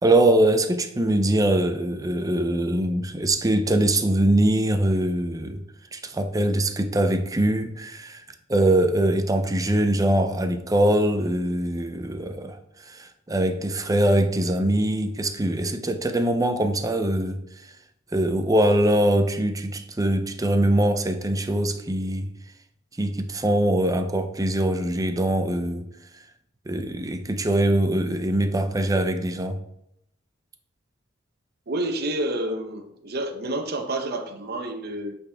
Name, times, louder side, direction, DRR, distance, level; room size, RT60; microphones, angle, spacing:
voice 1, 0.0-5.6 5.9-8.2 8.5-17.4 18.1-22.3 23.0-25.9 26.7-29.6, right 1 dB, 20° right, 0.5 m, -22 dB
voice 2, 31.7-35.1, right 1 dB, 55° right, 0.8 m, -29 dB
8.3 x 4.1 x 3.5 m
head